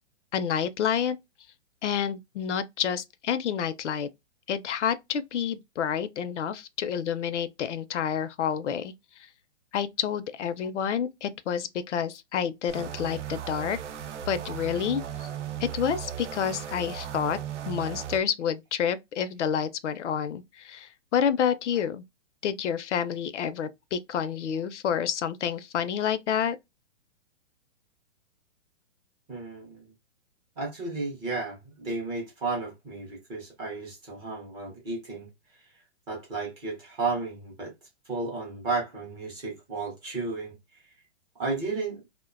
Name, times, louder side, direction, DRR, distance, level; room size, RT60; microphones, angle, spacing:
voice 1, 0.3-1.2 1.8-4.1 4.5-8.9 9.7-13.8 14.3-15.3 15.6-17.4 17.7-22.0 22.4-26.6, left 8 dB, 80° left, 0.5 m, -29 dB
sound 1, 12.7-18.2, right 10 dB, 90° right, 0.6 m, -36 dB
voice 2, 29.3-29.8 30.6-35.3 36.1-37.7 38.1-40.6 41.4-42.0, right 3 dB, 10° right, 0.4 m, -33 dB
2.4 x 2.1 x 2.4 m
hypercardioid pair, 135°, 35 cm